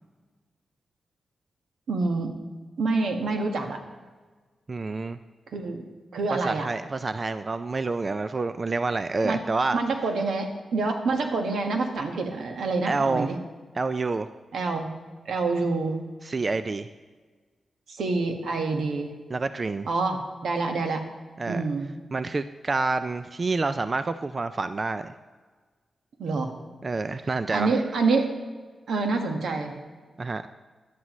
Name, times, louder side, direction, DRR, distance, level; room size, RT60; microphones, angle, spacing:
voice 1, 1.9-2.3 2.8-3.8 5.5-6.7 9.2-9.4 9.7-10.5 10.7-13.3 14.5-14.9 15.2-16.0 17.9-19.1 19.9-21.0 21.5-21.9 26.2-26.5 27.5-28.3 28.9-29.7, right 3 dB, 80° right, 4 dB, 1.5 m, -27 dB
voice 2, 4.7-5.2 6.3-9.8 12.9-13.3 13.8-14.3 16.2-16.9 19.3-19.9 21.4-21.6 22.1-25.1 26.8-27.8 30.2-30.5, right 3 dB, 30° right, 11 dB, 0.3 m, -28 dB
17.0 x 11.0 x 3.1 m, 1.4 s
wide cardioid pair, 155°, 0 cm